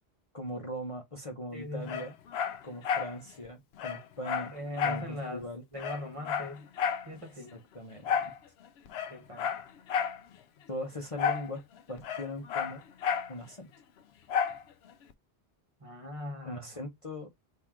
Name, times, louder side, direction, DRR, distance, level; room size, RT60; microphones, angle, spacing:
voice 1, 0.3-2.2 2.6-4.5 4.8-5.6 7.5-8.3 10.7-11.6 11.9-12.8 13.3-13.7 16.4-17.3, left 1 dB, 30° left, 0.9 m, -40 dB
voice 2, 1.5-2.0 4.5-5.5 5.7-6.7 7.0-7.5 9.1-9.5 15.8-16.7, left 1 dB, 30° right, 1.4 m, -40 dB
Dog, 1.9-3.1 3.5-3.6 3.8-5.1 5.4-5.5 5.8-7.1 8.0-8.4 8.9-10.2 11.2-11.5 11.8-13.3 14.3-14.6 15.1-15.2, left 7 dB, 70° left, 0.8 m, -31 dB
4.4 x 2.8 x 3.7 m
omnidirectional pair, 1.1 m